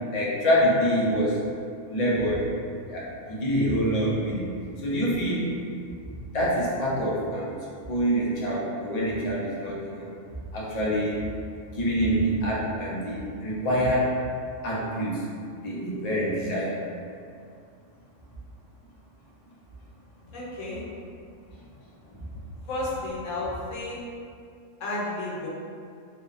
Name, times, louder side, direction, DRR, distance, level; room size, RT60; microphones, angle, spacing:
voice 1, 0.1-1.4 1.9-2.5 2.9-4.5 4.8-5.5 6.3-7.5 7.9-10.1 10.5-11.2 11.7-14.2 14.6-15.2 15.6-16.8, equal, 60° left, -6 dB, 0.4 m, -26 dB
voice 2, 20.3-20.9 22.7-24.0 24.8-25.5, left 2 dB, 90° left, -6 dB, 1.1 m, -32 dB
2.7 x 2.0 x 2.3 m, 2.3 s
omnidirectional pair, 1.3 m